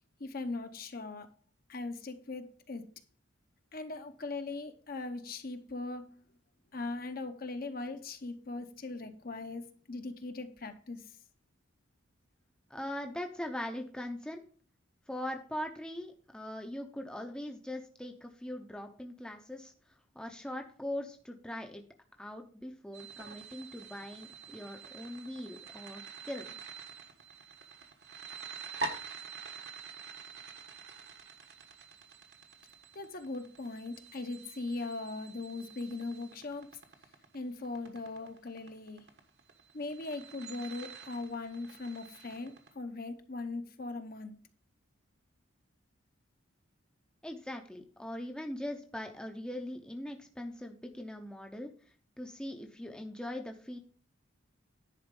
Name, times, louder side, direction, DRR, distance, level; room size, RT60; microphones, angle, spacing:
voice 1, 0.2-1.3 1.7-2.8 3.7-6.2 6.7-11.0 32.9-36.7 37.3-39.0 39.7-44.4, left 3 dB, 45° left, 0.8 m, -40 dB
voice 2, 12.7-14.4 15.1-19.7 20.1-21.8 22.2-26.6 47.2-51.7 52.2-53.8, left 1 dB, 5° left, 0.7 m, -41 dB
sound 1, 22.9-42.7, right 4 dB, 55° right, 1.2 m, -47 dB
10.5 x 4.3 x 5.2 m
head